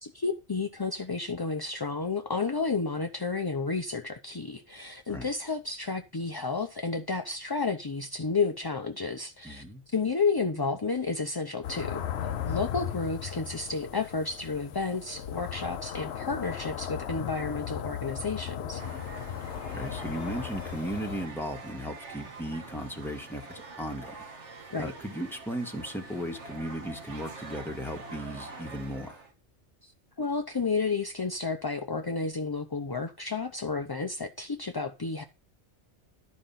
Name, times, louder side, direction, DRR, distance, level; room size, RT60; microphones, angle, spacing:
voice 1, 0.0-18.8 24.7-24.9 29.8-29.9 30.2-35.2, left 4 dB, 30° left, 0.5 m, -31 dB
voice 2, 9.4-9.8 19.7-24.2 24.7-29.2, equal, ahead, 1.7 m, -36 dB
sound 1, 11.6-21.3, left 9 dB, 70° left, 0.9 m, -36 dB
sound 2, 18.8-29.3, right 3 dB, 80° right, 1.7 m, -45 dB
12.0 x 5.2 x 5.7 m
omnidirectional pair, 1.2 m